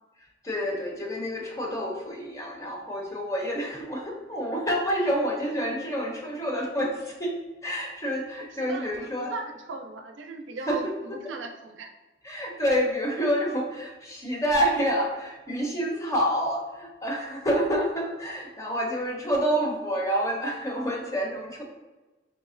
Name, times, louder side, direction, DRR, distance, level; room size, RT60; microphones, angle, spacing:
voice 1, 0.4-7.4 7.6-9.3 10.7-11.2 12.2-21.6, equal, 15° left, 0 dB, 0.6 m, -28 dB
voice 2, 8.6-11.9, right 3 dB, 75° right, 5 dB, 0.4 m, -38 dB
4.2 x 3.0 x 2.5 m, 1.1 s
head